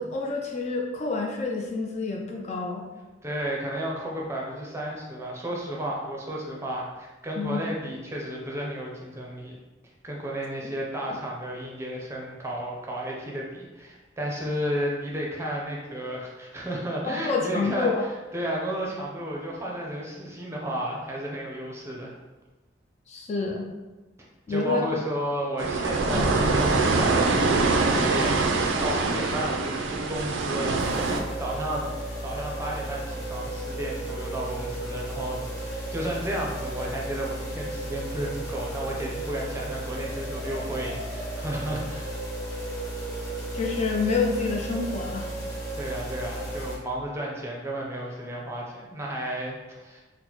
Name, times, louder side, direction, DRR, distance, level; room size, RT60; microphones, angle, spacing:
voice 1, 0.0-2.8 7.4-7.6 17.1-18.0 23.1-23.7 24.5-24.9 26.1-26.3 43.5-45.3, left 4 dB, 35° left, 1 dB, 0.3 m, -28 dB
voice 2, 3.2-9.6 10.0-17.9 18.3-22.1 24.5-28.4 28.8-31.9 32.2-42.1 45.7-50.0, right 1 dB, 15° right, -3 dB, 0.5 m, -33 dB
sound 1, 25.6-31.2, right 3 dB, 80° right, 0.4 m, -24 dB
sound 2, 30.8-46.8, right 1 dB, 20° left, 0.8 m, -34 dB
4.1 x 2.1 x 2.9 m, 1.2 s
head